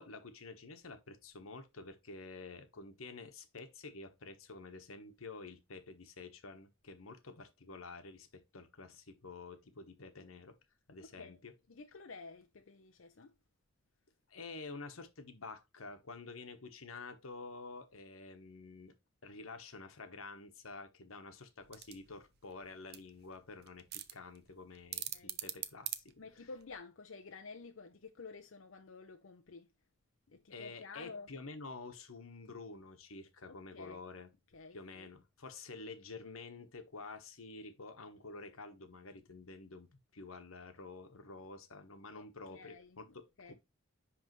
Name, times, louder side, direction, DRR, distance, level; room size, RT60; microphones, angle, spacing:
voice 1, 0.0-10.6 10.9-11.5 14.3-19.0 19.2-26.5 30.5-34.3 34.7-39.9 40.1-43.5, left 3 dB, 90° left, 1.2 m, -49 dB
voice 2, 11.0-11.4 11.7-13.3 25.1-25.4 26.2-29.7 30.3-31.3 33.5-34.0 34.5-35.1 42.1-43.5, left 4 dB, 70° left, 0.7 m, -51 dB
sound 1, 21.6-26.8, right 12 dB, 55° right, 0.7 m, -45 dB
10.5 x 3.5 x 3.1 m
head